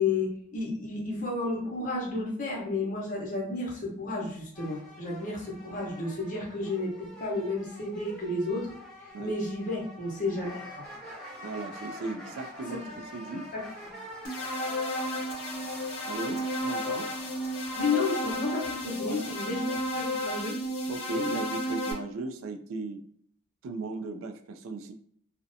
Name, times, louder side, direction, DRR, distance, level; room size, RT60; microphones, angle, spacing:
voice 1, 0.0-8.7 9.0-10.5 10.8-10.9 13.5-13.7 17.8-19.7 19.9-20.5, left 3 dB, 40° left, -2 dB, 0.8 m, -32 dB
sound 1, 4.5-20.0, left 1 dB, ahead, 0.8 m, -46 dB
voice 2, 11.4-13.5 16.0-17.1 19.0-19.8 20.9-23.0 23.6-24.9, right 3 dB, 70° right, 8 dB, 0.3 m, -37 dB
sound 2, 14.2-21.9, left 1 dB, 80° left, 0.6 m, -32 dB
2.5 x 2.1 x 2.6 m, 0.63 s
head